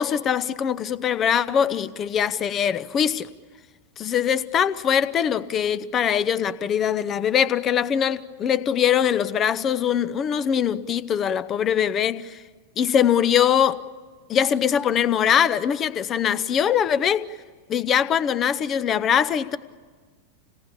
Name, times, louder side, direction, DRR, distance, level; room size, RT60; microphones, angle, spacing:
voice 1, 0.0-3.3 4.0-12.4 12.8-13.8 14.3-17.3 17.7-19.6, left 8 dB, 30° left, 0.8 m, -22 dB
27.0 x 18.5 x 8.5 m
figure-of-eight pair, 90°, 0 cm